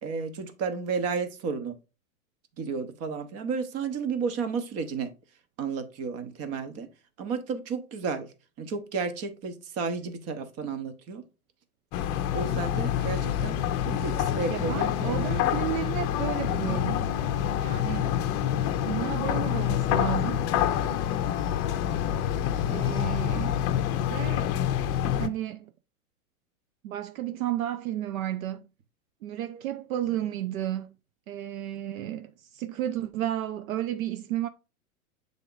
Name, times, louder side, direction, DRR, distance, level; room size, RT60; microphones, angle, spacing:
voice 1, 0.0-1.7 2.6-5.1 5.6-6.9 7.2-8.3 8.6-11.2 12.3-15.5 22.9-23.1, right 5 dB, 35° right, 1.0 m, -32 dB
sound 1, 11.9-25.3, left 10 dB, 35° left, 0.6 m, -27 dB
voice 2, 14.5-17.1 17.6-18.2 18.9-20.5 22.6-23.6 24.1-24.5 25.2-25.7 26.8-28.7 29.2-30.9 31.3-34.5, right 12 dB, 70° right, 0.6 m, -32 dB
6.7 x 3.6 x 3.9 m
hypercardioid pair, 120°, 43 cm